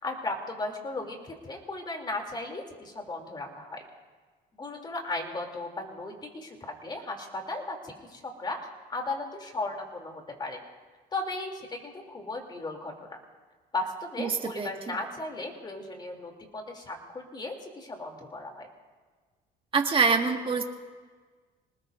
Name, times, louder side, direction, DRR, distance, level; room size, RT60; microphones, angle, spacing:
voice 1, 0.0-3.8 4.6-8.6 8.9-10.6 11.1-13.2 13.7-18.7, left 2 dB, 25° left, 2 dB, 3.2 m, -36 dB
voice 2, 14.2-14.7 19.7-20.7, right 5 dB, 30° right, 2 dB, 1.9 m, -25 dB
26.5 x 19.5 x 2.7 m, 1.4 s
cardioid pair, 110°, 17 cm